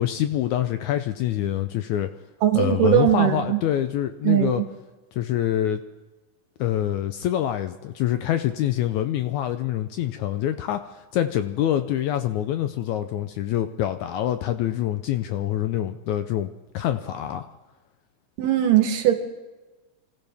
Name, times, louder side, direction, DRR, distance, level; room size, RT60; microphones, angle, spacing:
voice 1, 0.0-2.1 2.5-4.6 5.1-5.8 6.6-17.5, left 11 dB, 80° left, 9 dB, 1.7 m, -25 dB
voice 2, 2.4-3.6 4.2-4.6 18.4-19.1, right 12 dB, 80° right, 5 dB, 3.0 m, -20 dB
26.5 x 15.0 x 3.5 m, 1.2 s
omnidirectional pair, 3.9 m